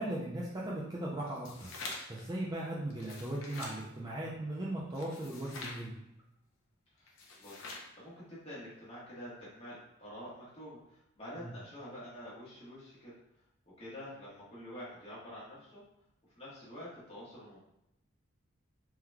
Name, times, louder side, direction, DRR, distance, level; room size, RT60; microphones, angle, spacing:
voice 1, 0.0-1.7 2.1-6.0 11.4-11.5, right 1 dB, 20° right, -5 dB, 0.4 m, -38 dB
sound 1, 1.3-2.2 2.9-3.8 4.9-5.8 7.1-7.9, left 3 dB, 70° left, 0.6 m, -45 dB
voice 2, 7.4-13.1 13.8-15.8 16.3-17.6, equal, 30° left, -8 dB, 1.3 m, -47 dB
3.7 x 2.9 x 2.2 m, 0.84 s
head